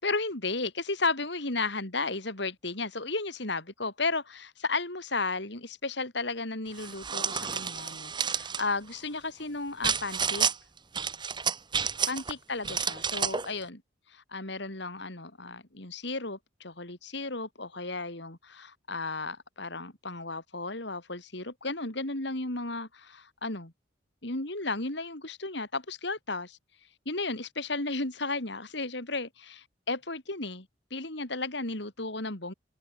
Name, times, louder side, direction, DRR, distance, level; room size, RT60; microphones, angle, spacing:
voice 1, 0.0-10.5 12.0-13.8 14.1-23.7 24.2-26.6 27.0-32.5, left 3 dB, 60° left, 3.3 m, -34 dB
sound 1, 6.8-8.6 9.8-10.6 11.0-12.3 12.6-13.5, right 6 dB, 25° right, 1.4 m, -30 dB
head